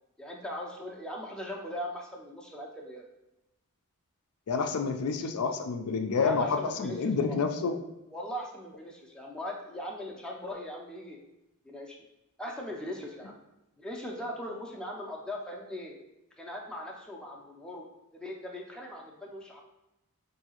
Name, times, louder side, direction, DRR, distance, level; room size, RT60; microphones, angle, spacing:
voice 1, 0.2-3.0 6.1-7.4 8.1-11.2 11.6-12.0 12.4-13.4 13.8-16.0 16.4-17.9 18.1-19.6, left 1 dB, 5° left, -2 dB, 0.4 m, -39 dB
voice 2, 4.5-7.8, left 5 dB, 75° left, 5 dB, 0.4 m, -29 dB
4.6 x 2.7 x 2.8 m, 0.94 s
head